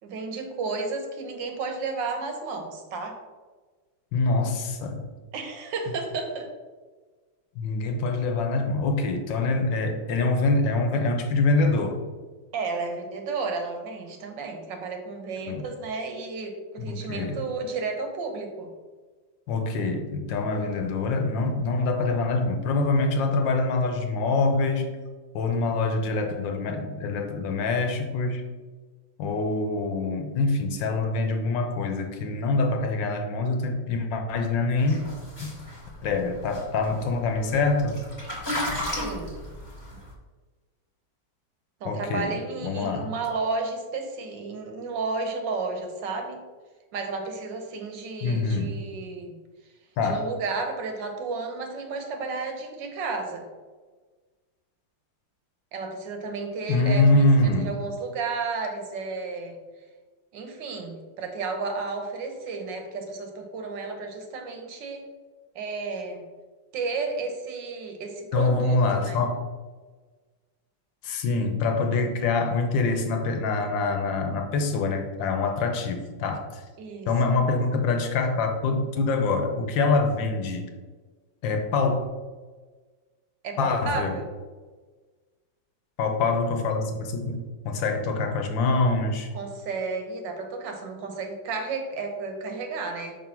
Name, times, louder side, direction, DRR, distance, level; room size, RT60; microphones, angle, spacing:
voice 1, 0.0-3.2 5.3-6.5 12.5-18.7 38.8-39.4 41.8-46.4 46.9-49.4 50.0-53.5 55.7-59.6 60.3-65.1 65.5-66.2 66.7-69.2 76.8-77.1 83.4-84.3 89.3-93.2, right 4 dB, 80° right, 4 dB, 1.6 m, -32 dB
voice 2, 4.1-5.1 7.6-12.0 15.4-15.6 16.8-17.4 19.5-24.9 25.3-28.4 29.2-35.0 35.4-35.5 36.0-38.0 41.8-43.1 48.2-48.7 50.0-50.2 56.7-57.7 68.3-69.4 71.0-76.6 77.1-80.7 81.4-82.0 83.6-84.2 86.0-87.4 87.6-89.3, left 3 dB, 85° left, 5 dB, 1.5 m, -25 dB
sound 1, 34.8-40.1, left 1 dB, 25° left, 1.4 m, -35 dB
5.1 x 3.9 x 5.8 m, 1.3 s
omnidirectional pair, 2.0 m